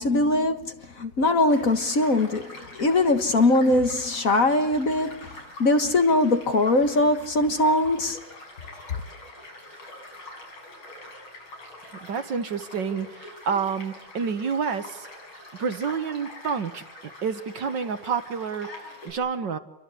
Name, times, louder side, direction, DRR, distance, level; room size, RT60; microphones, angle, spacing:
voice 1, 0.0-5.2 5.6-8.2, left 2 dB, 45° left, 1.8 m, -21 dB
Child speech kid speaking / Stream / Car passing by, 1.5-19.1, left 2 dB, 90° left, 8.2 m, -45 dB
voice 2, 11.8-15.1 15.6-16.8 17.2-19.6, right 6 dB, 60° right, 2.1 m, -29 dB
29.0 x 23.5 x 8.4 m
omnidirectional pair, 2.2 m